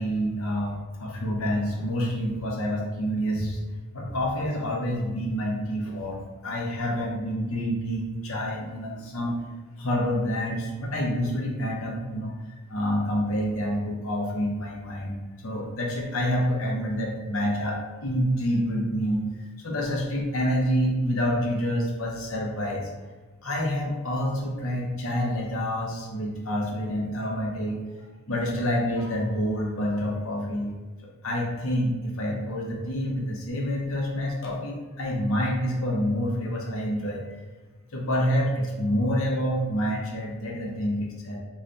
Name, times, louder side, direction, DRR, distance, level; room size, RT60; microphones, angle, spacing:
voice 1, 0.0-3.6 3.9-9.3 9.8-12.4 12.7-22.9 23.4-27.8 28.3-30.7 31.2-37.2 37.9-41.4, equal, 80° left, -1 dB, 0.8 m, -27 dB
3.3 x 2.4 x 3.9 m, 1.3 s
head